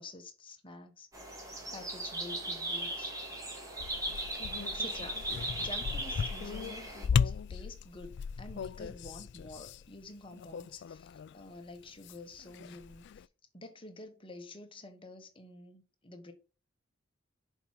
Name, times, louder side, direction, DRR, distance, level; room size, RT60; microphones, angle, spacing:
voice 1, 0.0-3.1 4.6-13.1 13.5-16.3, left 2 dB, 25° left, 1.2 m, -49 dB
sound 1, 1.1-7.1, right 1 dB, 15° right, 2.2 m, -38 dB
sound 2, 3.8-11.4 11.7-13.3, left 6 dB, 60° left, 0.3 m, -36 dB
7.0 x 4.6 x 5.6 m
head